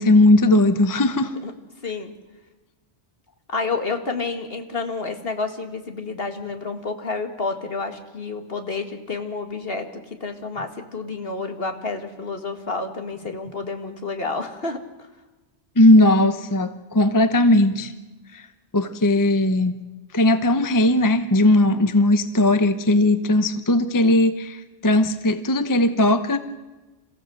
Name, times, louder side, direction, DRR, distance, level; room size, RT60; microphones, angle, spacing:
voice 1, 0.0-1.3 15.8-17.9 18.3-18.4 18.7-19.8 20.1-26.4, left 1 dB, 20° left, 10 dB, 0.8 m, -18 dB
voice 2, 1.8-2.1 3.5-15.1, left 3 dB, 55° left, 6 dB, 2.1 m, -30 dB
28.0 x 15.0 x 7.7 m, 1.2 s
omnidirectional pair, 1.2 m